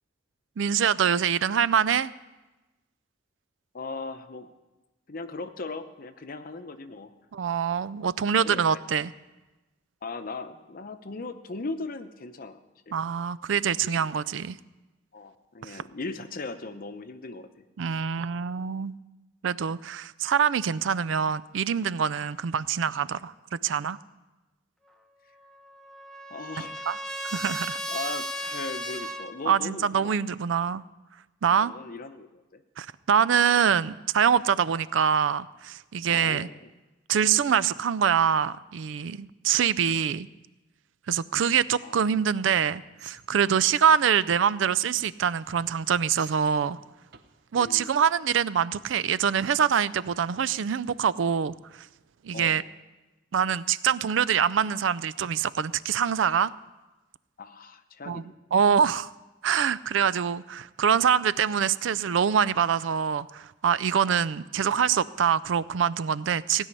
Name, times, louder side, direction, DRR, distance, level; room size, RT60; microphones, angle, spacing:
voice 1, 0.6-2.1 7.3-9.1 12.9-14.6 15.6-15.8 17.8-18.9 19.4-24.0 26.9-27.0 27.2-27.8 29.5-30.8 31.4-31.7 32.8-36.5 37.1-40.3 41.1-46.8 47.5-51.5 52.2-52.6 53.3-56.5 58.1-58.2 58.5-59.1 59.4-66.7, right 7 dB, 80° right, 18 dB, 0.4 m, -24 dB
voice 2, 3.7-4.5 5.1-7.1 8.4-8.8 10.0-12.6 12.9-13.0 13.8-14.1 15.1-17.5 26.3-26.8 27.9-30.1 31.4-32.6 36.1-36.6 41.8-42.0 47.6-47.9 52.3-52.7 57.4-58.3, left 3 dB, 50° left, 9 dB, 0.7 m, -38 dB
Trumpet, 25.4-29.3, equal, 5° left, 0.8 m, -35 dB
sound 1, 41.4-41.9 43.0-43.2 44.9-45.3 46.2-46.3 47.1-47.2, right 1 dB, 60° right, 0.8 m, -45 dB
16.5 x 5.5 x 9.7 m, 1.1 s
head